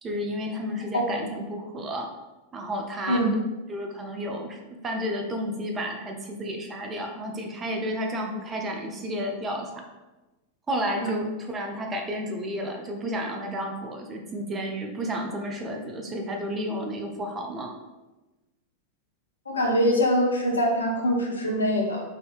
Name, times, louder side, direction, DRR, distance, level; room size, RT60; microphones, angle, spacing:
voice 1, 0.0-2.1 2.5-3.2 3.7-9.8 10.7-17.7, equal, 20° right, 2 dB, 0.5 m, -31 dB
voice 2, 19.5-22.0, equal, 75° left, 0 dB, 0.6 m, -23 dB
3.5 x 2.6 x 2.4 m, 1.1 s
figure-of-eight pair, 90°, 0 cm